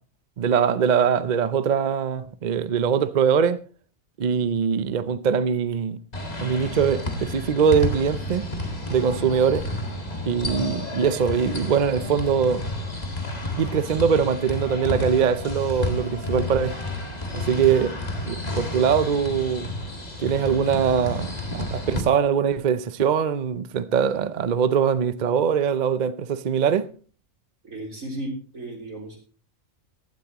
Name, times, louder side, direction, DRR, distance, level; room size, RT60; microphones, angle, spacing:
voice 1, 0.4-3.6 4.2-6.0 6.4-8.5 8.9-9.7 10.2-12.7 13.6-16.8 17.3-18.0 18.3-19.7 20.2-26.9, right 7 dB, 45° right, 0.6 m, -22 dB
sound 1, 6.1-22.0, left 1 dB, 30° left, 1.9 m, -31 dB
voice 2, 27.6-29.2, right 1 dB, 85° right, 4.0 m, -34 dB
15.5 x 12.5 x 3.0 m
omnidirectional pair, 1.4 m